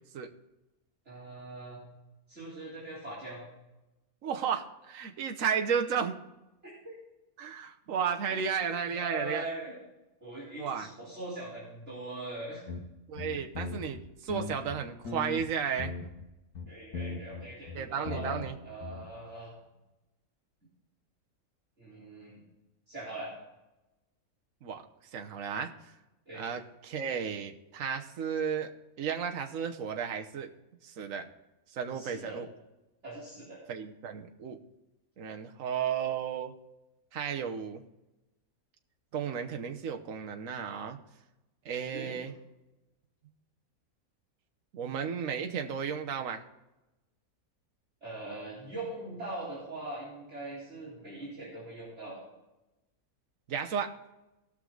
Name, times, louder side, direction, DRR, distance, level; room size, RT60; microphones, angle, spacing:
voice 1, 1.1-1.8 2.3-3.4 8.9-9.7 10.2-12.6 16.7-19.5 21.8-22.3 22.9-23.3 26.3-26.4 31.9-32.4 33.0-33.6 41.9-42.1 48.0-52.2, right 2 dB, 50° right, -8 dB, 4.2 m, -41 dB
voice 2, 4.2-6.2 7.4-9.5 10.6-10.9 13.1-15.9 17.7-18.5 24.6-24.8 25.1-25.7 26.3-30.5 30.8-31.3 31.7-32.5 33.7-34.6 35.2-36.5 37.1-37.8 39.1-41.0 41.6-42.3 44.7-46.4 53.5-53.9, right 7 dB, 65° right, 4 dB, 1.3 m, -33 dB
sound 1, 12.7-12.8 13.2-14.0 14.3-15.5 15.8-16.2 16.5-18.5 18.8-19.1, left 4 dB, 85° left, 1.8 m, -38 dB
18.5 x 6.4 x 3.9 m, 0.99 s
omnidirectional pair, 1.6 m